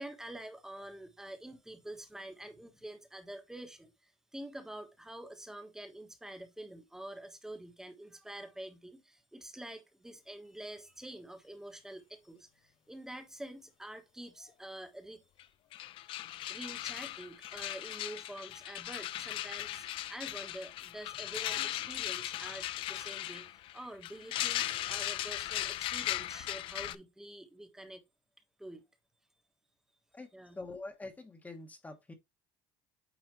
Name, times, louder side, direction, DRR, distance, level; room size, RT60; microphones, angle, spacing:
voice 1, 0.0-15.5 16.2-28.0 28.6-28.8 30.3-30.6, right 1 dB, 5° right, 1.3 m, -47 dB
sound 1, 15.4-15.5 15.7-26.9, left 14 dB, 55° left, 0.5 m, -38 dB
voice 2, 30.6-32.1, left 2 dB, 15° left, 1.3 m, -45 dB
9.0 x 4.3 x 3.1 m
cardioid pair, 140°, 11 cm